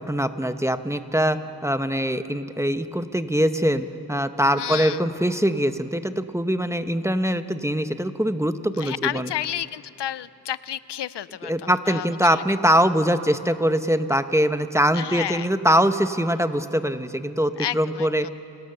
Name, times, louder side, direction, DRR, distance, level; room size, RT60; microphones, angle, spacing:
voice 1, 0.0-9.3 11.4-18.3, equal, 5° right, 10 dB, 0.8 m, -23 dB
voice 2, 4.5-5.1 8.8-12.6 14.9-15.5 17.6-18.3, left 11 dB, 80° left, 18 dB, 0.5 m, -31 dB
29.5 x 18.5 x 6.7 m, 2.7 s
wide cardioid pair, 90°, 41 cm